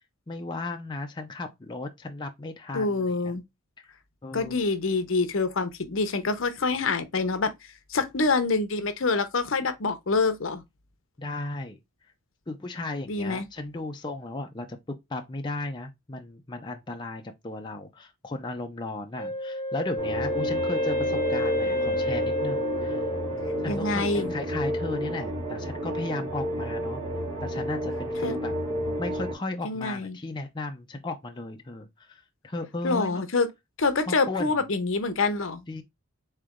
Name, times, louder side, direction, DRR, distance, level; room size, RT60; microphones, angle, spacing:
voice 1, 0.3-3.3 3.8-3.9 4.2-4.6 11.2-11.8 12.5-14.8 15.1-23.0 23.6-27.0 27.4-28.5 29.0-33.2 34.1-34.5 35.7-35.8, left 2 dB, 20° left, 0.5 m, -35 dB
voice 2, 2.7-3.4 4.3-7.5 7.9-10.6 13.1-13.5 23.7-24.3 28.2-28.4 29.6-30.2 32.8-33.5 33.8-35.6, left 3 dB, 70° left, 0.7 m, -26 dB
Wind instrument woodwind instrument, 19.2-24.0, left 1 dB, 60° right, 2.7 m, -29 dB
sound 1, 20.0-29.3, equal, 30° right, 2.6 m, -31 dB
3.8 x 3.3 x 3.6 m
head